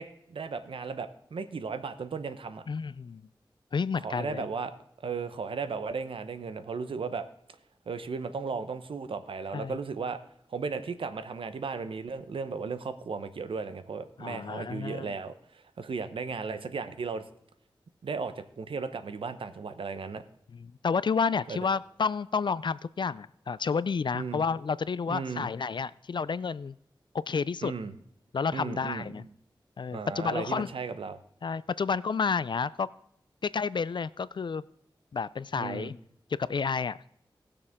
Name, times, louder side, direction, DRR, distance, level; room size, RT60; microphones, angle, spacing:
voice 1, 0.0-2.6 4.0-4.7 5.0-7.3 7.9-10.2 10.5-17.2 18.0-20.2 21.5-21.6 24.1-24.4 25.1-25.5 27.6-27.9 28.5-29.3 29.9-31.2 35.5-35.9, right 5 dB, 85° right, 11 dB, 0.9 m, -35 dB
voice 2, 2.7-3.2 3.7-4.5 9.5-9.8 14.2-15.1 20.5-26.8 27.3-27.7 28.3-29.2 29.8-30.7 31.4-32.9 33.4-34.6 35.1-36.0 36.4-37.0, left 5 dB, 60° left, 19 dB, 0.4 m, -30 dB
18.5 x 6.7 x 3.6 m, 0.72 s
cardioid pair, 45°, 9 cm